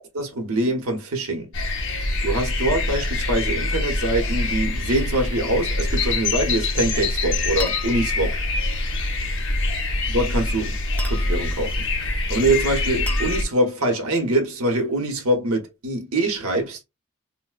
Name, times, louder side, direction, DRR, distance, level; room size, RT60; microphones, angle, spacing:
voice 1, 0.1-1.5 2.2-8.4 10.1-10.8 11.0-11.8 12.3-16.8, right 1 dB, 75° right, 0.9 m, -24 dB
sound 1, 1.5-13.4, left 2 dB, 60° left, 0.8 m, -25 dB
sound 2, 6.5-7.0 7.6-8.3 11.0-11.7 13.1-13.9, left 2 dB, 5° left, 0.5 m, -37 dB
3.9 x 2.1 x 2.3 m
head